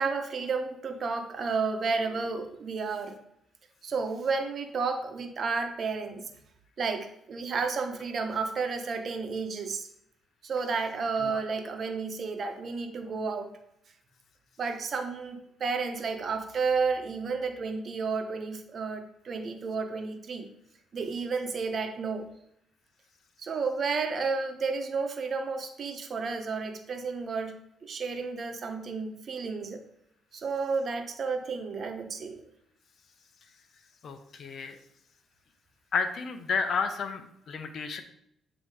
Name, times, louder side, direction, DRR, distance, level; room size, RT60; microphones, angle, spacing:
voice 1, 0.0-3.2 3.8-6.3 6.8-9.9 10.4-13.5 14.6-20.5 20.9-22.3 23.4-27.6 27.8-29.8 30.3-32.4, right 4 dB, 50° right, 6 dB, 1.0 m, -31 dB
voice 2, 34.0-34.8 35.9-38.0, left 5 dB, 60° left, 8 dB, 0.8 m, -31 dB
7.5 x 3.0 x 4.8 m, 0.74 s
cardioid pair, 90°, 0 cm